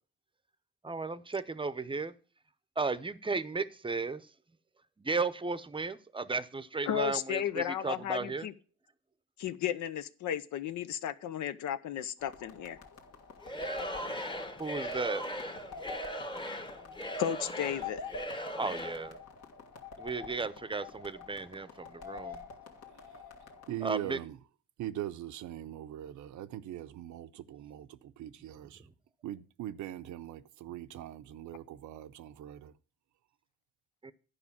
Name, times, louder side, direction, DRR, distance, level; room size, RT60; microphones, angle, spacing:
voice 1, 0.8-2.1 2.8-4.3 5.0-8.5 14.6-15.2 18.6-19.2 20.0-22.4 23.8-24.2 34.0-34.1, right 4 dB, 15° right, 0.7 m, -34 dB
voice 2, 6.9-8.5 9.4-12.8 17.2-18.1, left 10 dB, 75° left, 0.8 m, -34 dB
sound 1, 12.2-23.8, left 5 dB, 55° left, 1.7 m, -47 dB
Singing / Crowd, 13.4-19.1, equal, 15° left, 1.1 m, -39 dB
voice 3, 23.7-24.4 24.8-28.8 29.2-32.7, right 12 dB, 75° right, 0.7 m, -41 dB
11.0 x 5.0 x 7.1 m
cardioid pair, 90°, 30 cm